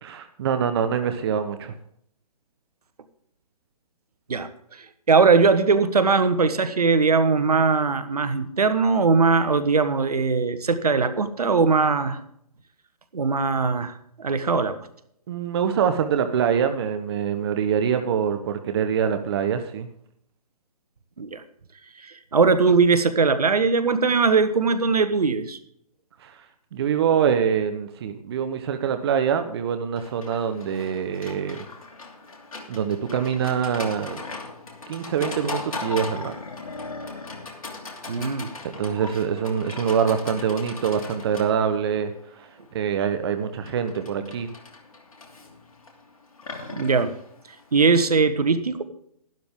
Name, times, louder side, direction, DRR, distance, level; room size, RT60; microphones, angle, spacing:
voice 1, 0.0-1.7 15.3-19.9 26.2-26.4 26.7-31.6 32.7-34.2 34.9-36.3 38.8-44.5, right 7 dB, 40° right, 9 dB, 1.0 m, -25 dB
voice 2, 5.1-12.2 13.1-14.8 21.2-21.4 22.0-25.6 38.1-38.5 46.7-47.1 47.7-48.8, right 4 dB, 70° right, 12 dB, 1.3 m, -20 dB
Livestock farm animals working animals, 30.0-48.0, left 3 dB, 60° left, 2.8 m, -39 dB
12.0 x 11.5 x 3.7 m, 0.69 s
figure-of-eight pair, 140°, 20 cm